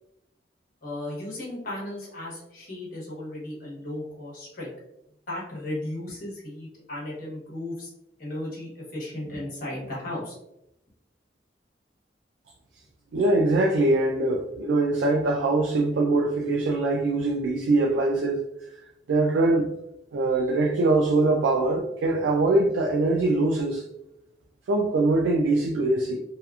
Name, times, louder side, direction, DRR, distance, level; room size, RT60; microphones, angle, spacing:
voice 1, 0.8-4.7 5.3-7.9 8.2-10.4, left 1 dB, 50° left, -4 dB, 1.0 m, -35 dB
voice 2, 13.1-18.4 19.1-19.7 20.1-23.8 24.7-26.2, right 2 dB, 90° right, 1 dB, 0.3 m, -23 dB
2.8 x 2.4 x 2.3 m, 0.84 s
head